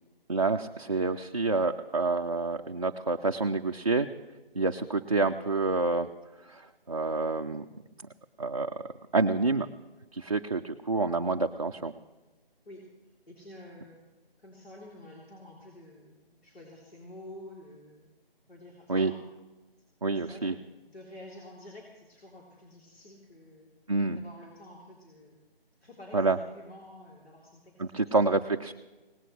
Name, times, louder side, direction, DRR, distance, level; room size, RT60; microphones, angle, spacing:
voice 1, 0.3-4.1 4.6-6.1 6.5-7.6 8.4-8.8 9.1-9.7 10.1-11.9 18.9-19.1 20.0-20.5 23.9-24.2 26.1-26.4 27.8-28.7, right 3 dB, 35° right, 3 dB, 0.4 m, -28 dB
voice 2, 13.3-14.0 14.4-18.1 18.5-19.2 20.1-23.7 24.1-25.4 25.8-28.1, left 1 dB, 80° left, -4 dB, 3.7 m, -49 dB
19.5 x 18.5 x 3.3 m, 1.2 s
figure-of-eight pair, 155°, 30 cm